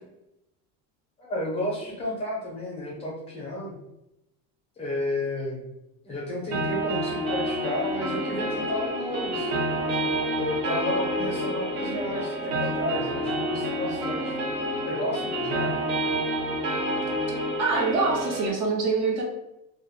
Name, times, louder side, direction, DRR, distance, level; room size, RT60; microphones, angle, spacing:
voice 1, 1.2-3.7 4.8-5.6 6.0-9.7 10.4-14.4 14.9-15.7, left 1 dB, 15° left, -3 dB, 0.5 m, -32 dB
sound 1, 6.5-18.5, right 1 dB, 80° right, 0.8 m, -28 dB
voice 2, 17.6-19.2, right 4 dB, 45° right, 0 dB, 0.4 m, -25 dB
2.2 x 2.1 x 3.0 m, 0.88 s
cardioid pair, 180°, 38 cm